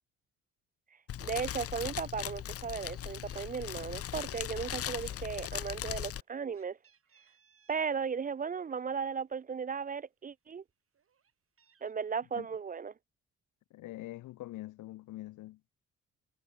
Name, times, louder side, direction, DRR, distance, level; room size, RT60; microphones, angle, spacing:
Fire, 1.1-6.2, left 11 dB, 50° left, 0.7 m, -39 dB
voice 1, 1.2-6.8 7.7-10.6 11.8-12.9, right 6 dB, 30° right, 0.5 m, -36 dB
Meow, 1.5-1.7 2.0-2.3 2.5-3.5 3.8-4.7 5.0-8.0 8.4-9.5 10.0-10.1 10.4-11.9, right 7 dB, 45° right, 6.1 m, -69 dB
voice 2, 13.7-15.6, left 17 dB, 90° left, 1.6 m, -44 dB
cardioid pair, 90°, 30 cm